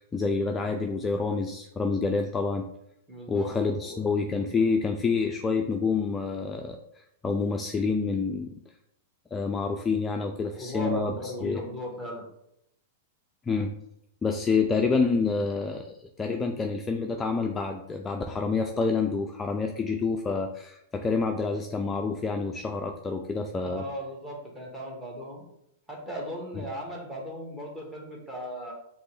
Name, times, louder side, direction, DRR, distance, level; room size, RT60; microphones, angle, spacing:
voice 1, 0.0-2.7 3.3-6.8 7.2-8.5 9.3-11.1 11.4-11.6 13.5-13.7 14.2-23.8, left 4 dB, 15° left, 3 dB, 0.4 m, -28 dB
voice 2, 3.1-4.1 10.5-12.3 23.6-25.4 25.9-28.7, equal, 10° right, -2 dB, 1.5 m, -37 dB
5.1 x 3.0 x 3.2 m, 0.78 s
hypercardioid pair, 125°, 0 cm